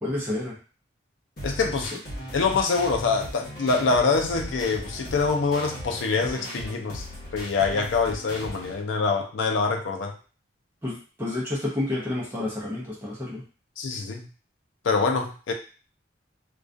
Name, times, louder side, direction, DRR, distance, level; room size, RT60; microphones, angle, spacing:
voice 1, 0.0-0.6 1.9-2.0 10.8-13.4, left 2 dB, 10° right, -6 dB, 0.6 m, -30 dB
voice 2, 1.4-1.9 2.3-7.1 7.3-10.1 13.8-14.3 14.8-15.5, left 4 dB, 80° left, 3 dB, 0.4 m, -25 dB
sound 1, 1.4-8.8, equal, 50° left, 0.9 m, -38 dB
2.3 x 2.2 x 2.5 m, 0.37 s
head